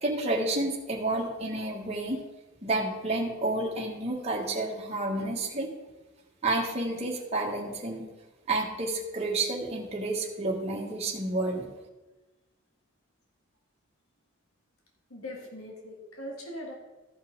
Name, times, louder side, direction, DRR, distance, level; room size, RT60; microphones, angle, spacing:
voice 1, 0.0-2.2 2.6-5.7 6.4-8.1 8.5-11.7, right 2 dB, 30° right, -2 dB, 1.3 m, -30 dB
voice 2, 15.1-16.8, left 1 dB, 85° left, 1 dB, 1.7 m, -40 dB
14.0 x 5.6 x 3.8 m, 1.1 s
head